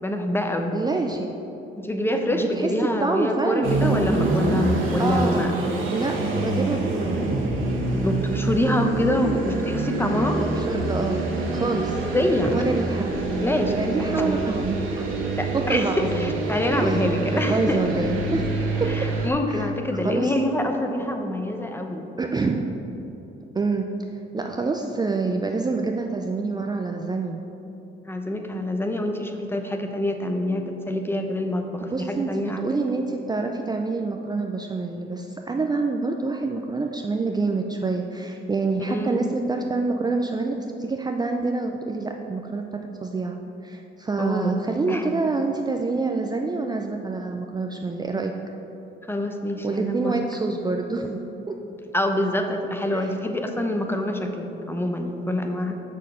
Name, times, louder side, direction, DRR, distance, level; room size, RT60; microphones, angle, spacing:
voice 1, 0.0-0.7 1.8-5.5 8.0-10.4 12.0-12.7 13.4-14.4 15.4-17.8 18.9-22.1 28.0-32.8 38.8-39.3 44.2-44.6 44.9-45.1 49.1-50.1 51.9-55.7, left 1 dB, 10° left, 4 dB, 0.8 m, -26 dB
voice 2, 0.7-1.3 2.3-2.7 3.0-4.0 5.0-5.5 5.9-7.2 10.2-11.2 11.5-12.0 12.5-13.1 13.7-15.1 15.5-16.4 16.8-17.0 17.3-18.5 18.8-18.9 19.5-19.7 20.0-20.3 22.2-22.7 23.5-23.9 24.3-27.4 31.9-43.4 43.6-48.3 49.6-51.2 51.5-51.6 52.9-53.1, right 3 dB, 20° right, 3 dB, 0.5 m, -27 dB
sound 1, 3.6-19.3, right 2 dB, 80° right, 1.4 m, -26 dB
6.4 x 6.3 x 5.4 m, 3.0 s
cardioid pair, 90°, 20 cm